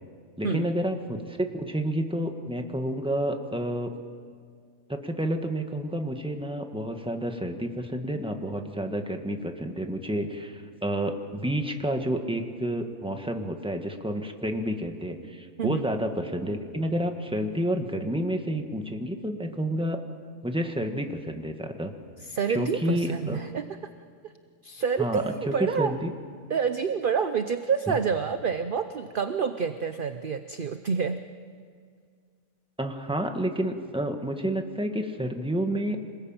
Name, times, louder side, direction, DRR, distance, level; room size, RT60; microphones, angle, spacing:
voice 1, 0.4-3.9 4.9-20.0 20.4-21.9 22.5-23.4 25.0-26.1 27.9-28.0 32.8-36.0, equal, 5° right, 4 dB, 1.6 m, -30 dB
voice 2, 22.3-23.8 24.2-24.3 24.6-25.9 26.5-31.2, right 6 dB, 45° right, 9 dB, 0.8 m, -28 dB
26.5 x 20.5 x 8.9 m, 2.1 s
omnidirectional pair, 1.5 m